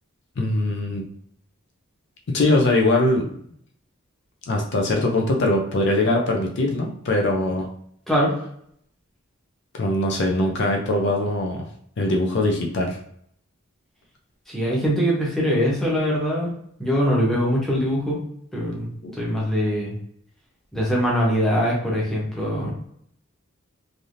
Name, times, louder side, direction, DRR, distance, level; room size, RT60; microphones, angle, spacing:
voice 1, 0.4-1.0 2.3-3.3 4.5-7.7 9.7-11.7 12.0-13.0 19.0-19.1, left 2 dB, 55° left, 1 dB, 0.5 m, -22 dB
voice 2, 14.5-16.5 16.8-18.2 18.5-18.9 19.1-19.9 20.7-22.7, equal, ahead, -5 dB, 0.9 m, -22 dB
3.3 x 2.6 x 2.5 m, 0.67 s
head